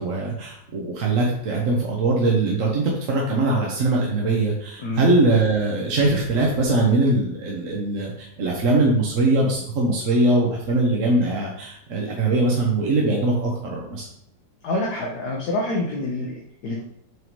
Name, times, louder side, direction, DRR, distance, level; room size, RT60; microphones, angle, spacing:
voice 1, 0.0-14.1, right 2 dB, 50° right, -2 dB, 1.1 m, -21 dB
voice 2, 14.6-16.8, left 2 dB, 60° left, -2 dB, 1.4 m, -27 dB
7.9 x 3.8 x 3.1 m, 0.68 s
omnidirectional pair, 2.0 m